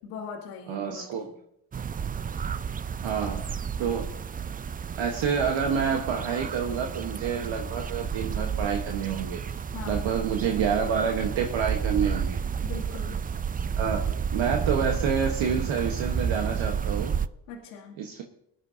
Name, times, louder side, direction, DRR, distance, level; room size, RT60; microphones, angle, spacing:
voice 1, 0.0-1.3 9.7-10.0 12.6-13.2 17.5-18.0, left 5 dB, 90° left, -3 dB, 1.6 m, -40 dB
voice 2, 0.7-1.3 3.0-3.4 3.8-4.1 5.0-9.4 9.9-12.4 13.7-14.0 14.3-17.1 18.0-18.2, right 7 dB, 70° right, 2 dB, 1.3 m, -28 dB
sound 1, 1.7-17.3, right 7 dB, 20° right, 0.3 m, -31 dB
20.5 x 10.5 x 2.8 m, 0.75 s
hypercardioid pair, 50°, 48 cm